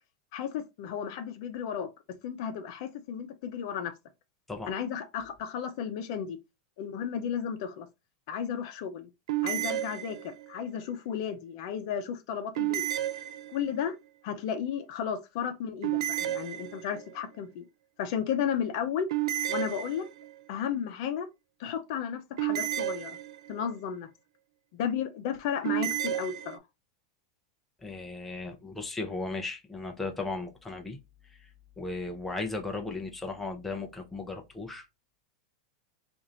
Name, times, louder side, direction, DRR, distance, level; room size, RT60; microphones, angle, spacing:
voice 1, 0.3-1.9 2.2-3.9 4.7-6.4 6.8-7.9 8.3-9.1 9.4-12.8 13.5-14.0 14.2-17.6 18.0-19.1 19.5-20.1 20.5-21.3 21.6-23.2 23.5-24.1 24.7-26.6, left 8 dB, 60° left, 0.7 m, -33 dB
sound 1, 9.3-10.6 12.6-13.9 15.8-17.1 19.1-20.4 22.4-23.7 25.6-26.6, right 14 dB, 70° right, 0.3 m, -32 dB
voice 2, 27.8-31.0 31.4-31.5 31.8-34.8, left 3 dB, 5° left, 0.6 m, -36 dB
3.0 x 2.6 x 3.8 m
supercardioid pair, 135°, 3 cm